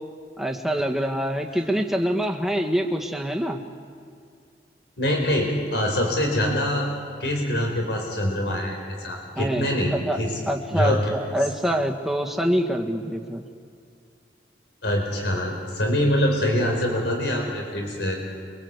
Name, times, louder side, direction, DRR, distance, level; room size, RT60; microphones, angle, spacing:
voice 1, 0.4-3.6 9.4-13.4, equal, ahead, 2 dB, 1.8 m, -25 dB
voice 2, 5.0-6.8 7.2-10.4 10.7-11.0 14.8-18.2, left 1 dB, 70° left, 1 dB, 4.4 m, -24 dB
29.0 x 23.5 x 8.3 m, 2.3 s
head